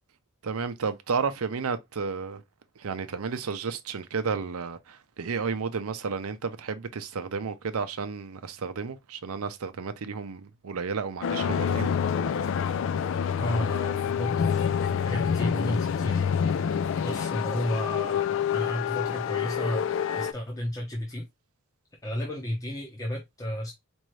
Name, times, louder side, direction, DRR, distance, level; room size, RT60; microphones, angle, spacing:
voice 1, 0.4-2.4 2.8-12.0, right 5 dB, 80° right, 0.6 m, -32 dB
sound 1, 11.2-20.3, left 7 dB, 60° left, 0.3 m, -27 dB
voice 2, 13.4-16.3 17.0-19.9 20.2-21.3 22.0-23.7, left 1 dB, 15° left, 0.8 m, -32 dB
4.5 x 2.6 x 3.1 m
head